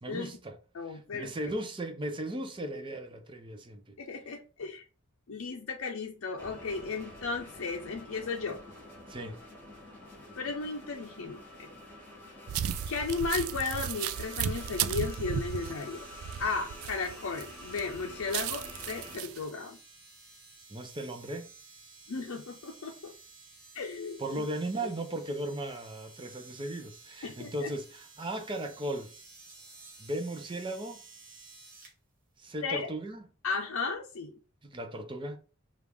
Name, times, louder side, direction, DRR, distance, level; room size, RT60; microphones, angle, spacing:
voice 1, 0.0-0.6 0.8-3.9 9.1-9.4 20.7-21.5 24.2-29.1 30.0-31.0 32.4-33.2 34.6-35.4, right 1 dB, 25° right, 0.6 m, -37 dB
voice 2, 0.7-1.3 4.0-4.8 5.3-8.6 10.4-11.7 12.9-16.1 16.4-19.8 22.1-23.1 23.7-24.4 24.8-24.9 27.2-27.7 32.6-32.9 33.4-34.3, left 4 dB, 70° left, 0.6 m, -35 dB
sound 1, 6.4-19.2, left 1 dB, 10° left, 1.9 m, -48 dB
sound 2, 12.5-17.4 17.8-19.4, right 9 dB, 85° right, 0.3 m, -34 dB
sound 3, 14.5-31.9 32.8-32.9, right 3 dB, 40° right, 1.7 m, -54 dB
5.0 x 2.5 x 3.4 m
head